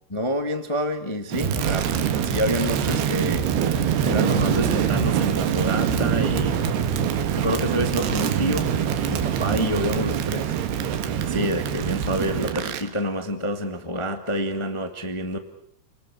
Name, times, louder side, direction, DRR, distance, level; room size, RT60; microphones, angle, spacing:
voice 1, 0.1-1.9 2.2-3.5 4.0-6.6 7.3-8.8 9.1-10.5 11.2-15.4, equal, 20° left, 7 dB, 0.8 m, -28 dB
Crackle, 1.3-12.9, right 8 dB, 80° right, 3.7 m, -24 dB
30.0 x 20.0 x 8.4 m, 0.67 s
omnidirectional pair, 4.6 m